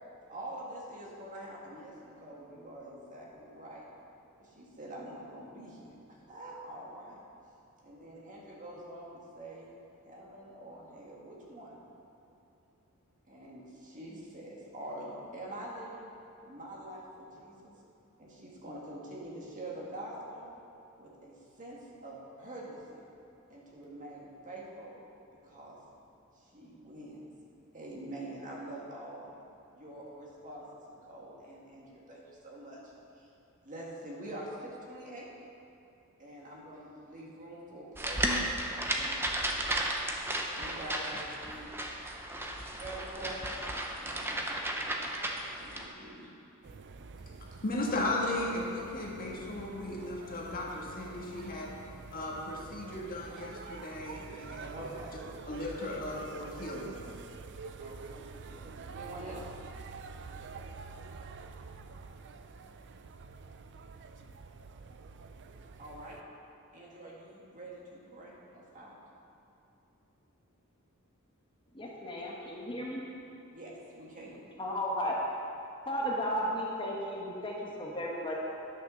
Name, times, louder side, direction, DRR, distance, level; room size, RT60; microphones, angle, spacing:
voice 1, 0.3-3.8 4.4-7.2 7.8-9.7 10.0-11.8 13.3-16.1 16.4-17.7 18.2-20.5 21.0-23.1 23.5-24.9 25.4-25.8 26.3-27.3 27.7-29.3 29.7-33.3 33.6-35.3 36.2-38.4 38.9-39.4 40.6-41.7 42.7-43.4 44.0-45.0 45.6-46.4 54.7-55.2 57.8-59.5 65.8-66.2 66.7-69.0 73.5-74.4, right 1 dB, 35° right, -4 dB, 1.9 m, -45 dB
sound 1, 38.0-45.9, right 1 dB, 10° right, 0.8 m, -34 dB
sound 2, 46.6-66.2, right 4 dB, 55° right, 0.5 m, -47 dB
voice 2, 47.6-51.7 52.1-54.8 55.4-57.0, left 1 dB, 40° left, -3 dB, 1.6 m, -36 dB
voice 3, 71.7-73.0 74.6-75.2 75.9-78.3, equal, 25° left, -3 dB, 1.3 m, -34 dB
11.0 x 6.5 x 6.4 m, 2.8 s
head